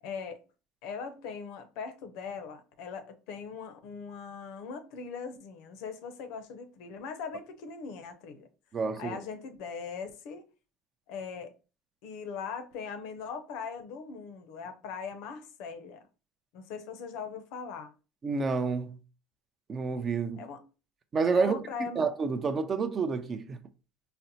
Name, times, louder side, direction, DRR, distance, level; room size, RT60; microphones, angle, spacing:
voice 1, 0.0-0.4 0.8-8.5 9.0-10.4 11.1-11.5 12.0-16.1 16.5-17.9 20.4-20.6 21.4-22.0, left 6 dB, 70° left, 0.5 m, -40 dB
voice 2, 8.7-9.2 18.2-19.0 19.7-20.5 21.1-21.6 22.0-23.6, right 4 dB, 30° right, 0.4 m, -29 dB
4.0 x 2.0 x 2.7 m
supercardioid pair, 105°, 0 cm